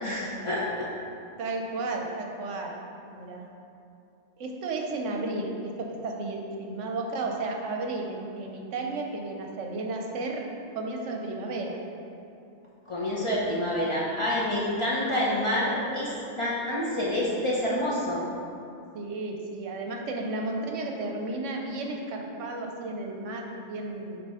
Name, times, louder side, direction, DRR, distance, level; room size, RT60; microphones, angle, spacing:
voice 1, 0.0-0.9 12.9-18.2, left 1 dB, 30° left, -7 dB, 0.7 m, -28 dB
voice 2, 1.4-2.8 3.1-3.5 4.4-10.4 10.7-11.8 18.9-24.2, right 2 dB, 70° right, 1 dB, 1.0 m, -33 dB
6.6 x 3.0 x 4.8 m, 2.6 s
omnidirectional pair, 1.3 m